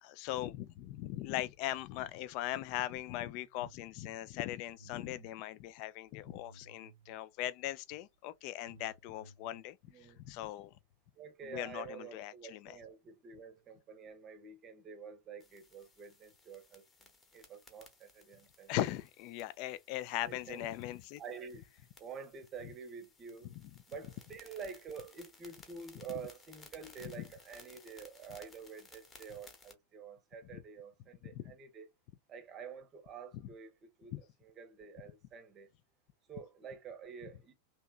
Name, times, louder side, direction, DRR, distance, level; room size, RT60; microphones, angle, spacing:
voice 1, 0.0-10.7 11.5-12.8 18.7-21.2 23.6-23.7 31.2-31.5 34.1-34.2, left 14 dB, 45° left, 0.4 m, -39 dB
sound 1, 2.9-3.8 4.2-7.2 7.9-8.0 8.3-9.6, right 2 dB, 85° right, 0.4 m, -59 dB
voice 2, 9.9-10.2 11.2-16.8 17.3-18.8 20.2-20.7 21.2-21.6 22.0-23.5 23.9-31.9 32.3-34.1 34.4-35.7 36.3-37.5, right 6 dB, 30° right, 0.8 m, -48 dB
sound 2, 15.4-29.7, left 3 dB, 20° left, 1.0 m, -60 dB
3.3 x 2.8 x 2.3 m
figure-of-eight pair, 90°, 0 cm